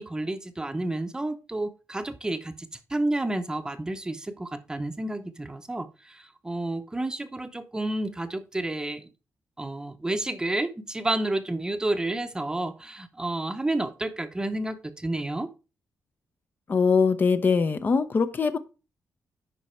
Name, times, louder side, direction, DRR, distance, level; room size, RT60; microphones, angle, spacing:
voice 1, 0.0-9.1 9.6-15.5, right 2 dB, 15° right, 9 dB, 0.7 m, -30 dB
voice 2, 16.7-18.6, left 5 dB, 35° left, 11 dB, 0.6 m, -22 dB
10.5 x 4.1 x 4.3 m, 0.31 s
wide cardioid pair, 130°, 5 cm